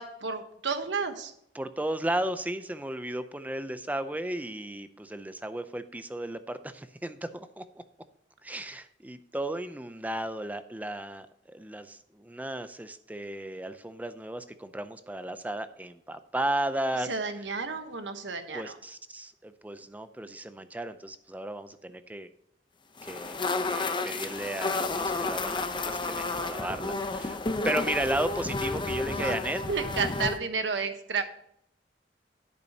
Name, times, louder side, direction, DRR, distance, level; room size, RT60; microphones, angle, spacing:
voice 1, 0.0-1.3 17.0-18.8 29.1-29.4 29.7-31.2, right 4 dB, 85° right, 8 dB, 1.1 m, -32 dB
voice 2, 1.5-7.6 8.4-17.1 18.5-22.3 23.0-23.4 23.6-27.4 27.6-29.6, right 1 dB, 10° right, 11 dB, 0.5 m, -34 dB
sound 1, 23.0-30.4, left 3 dB, 25° left, 0.7 m, -31 dB
10.5 x 8.5 x 2.8 m, 0.74 s
head